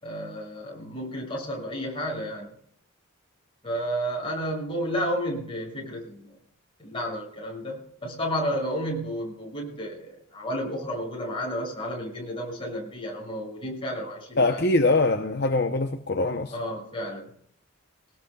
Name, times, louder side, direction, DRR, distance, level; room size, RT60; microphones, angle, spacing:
voice 1, 0.0-2.5 3.6-6.4 6.8-14.6 16.5-17.3, equal, 25° left, 6.0 m, -32 dB
voice 2, 14.4-16.5, left 2 dB, 45° left, 0.8 m, -23 dB
22.0 x 18.5 x 2.3 m
head